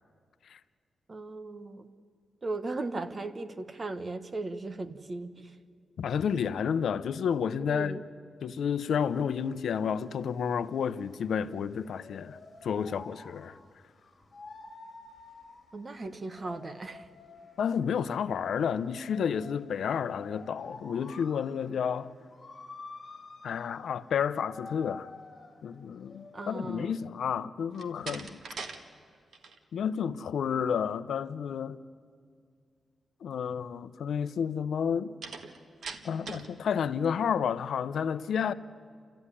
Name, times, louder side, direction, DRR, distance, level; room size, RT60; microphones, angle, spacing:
voice 1, 1.1-1.9 2.4-5.5 7.7-8.0 15.7-17.1 26.3-26.9, right 2 dB, 30° right, 1.2 m, -37 dB
voice 2, 6.0-8.0 8.4-13.6 17.6-22.1 23.4-25.1 25.6-28.4 29.7-31.8 33.2-35.1 36.0-38.5, left 7 dB, 80° left, 0.7 m, -31 dB
sound 1, 8.9-26.9, left 3 dB, 35° left, 3.2 m, -50 dB
Slam, 27.7-28.8 29.1-29.6 35.2-36.6, right 4 dB, 65° right, 1.8 m, -41 dB
29.5 x 14.5 x 9.9 m
wide cardioid pair, 140°, 0 cm